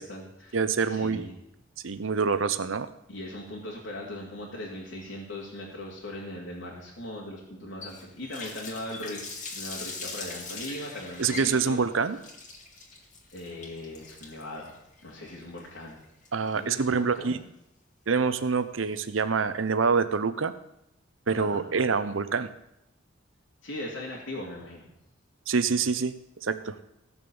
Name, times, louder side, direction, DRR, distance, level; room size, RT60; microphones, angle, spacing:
voice 1, 0.0-0.6 0.9-1.3 3.1-11.9 12.9-13.0 13.3-14.7 15.0-16.0 16.5-17.4 21.3-21.7 23.6-24.9, left 1 dB, 75° left, -5 dB, 2.7 m, -39 dB
voice 2, 0.5-1.3 1.8-2.9 11.2-12.2 16.3-17.4 18.1-20.5 21.3-22.5 25.5-26.1 26.4-26.8, right 5 dB, 85° right, 12 dB, 0.7 m, -26 dB
Water tap faucet, 7.8-16.7, left 3 dB, 40° left, 2.5 m, -41 dB
16.5 x 7.0 x 7.0 m, 0.84 s
head